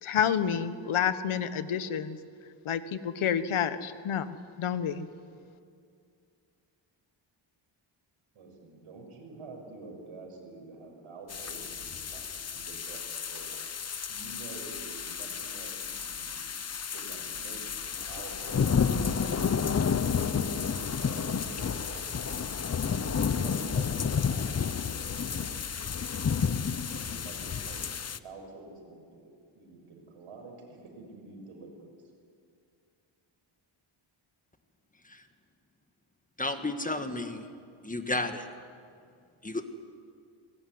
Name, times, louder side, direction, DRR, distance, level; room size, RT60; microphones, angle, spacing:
voice 1, 0.0-2.2 2.6-5.1, left 8 dB, 75° left, 12 dB, 1.4 m, -29 dB
voice 2, 8.3-13.7 14.1-16.5 16.9-17.6 17.9-18.7 19.0-22.1 23.0-26.1 26.8-27.8 28.2-29.3 29.5-31.9, right 3 dB, 75° right, 2 dB, 6.7 m, -48 dB
sound 1, 11.3-28.2, left 6 dB, 30° left, 0.8 m, -31 dB
voice 3, 36.4-37.5 37.8-38.5 39.4-39.6, left 2 dB, 15° left, 7 dB, 1.6 m, -32 dB
22.5 x 21.0 x 9.6 m, 2.3 s
cardioid pair, 105°, 50 cm